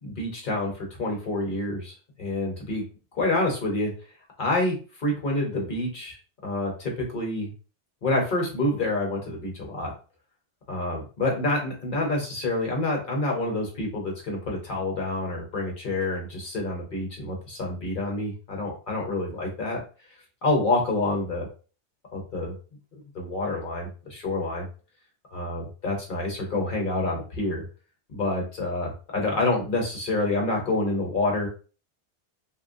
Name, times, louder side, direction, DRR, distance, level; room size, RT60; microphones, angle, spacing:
voice 1, 0.0-2.8 3.1-3.9 4.4-6.2 6.4-7.5 8.0-9.9 10.7-19.8 20.4-21.5 22.1-22.5 23.1-24.7 25.3-27.6 28.1-31.5, left 2 dB, 50° left, -1 dB, 1.0 m, -27 dB
3.0 x 2.0 x 2.5 m, 0.36 s
omnidirectional pair, 1.2 m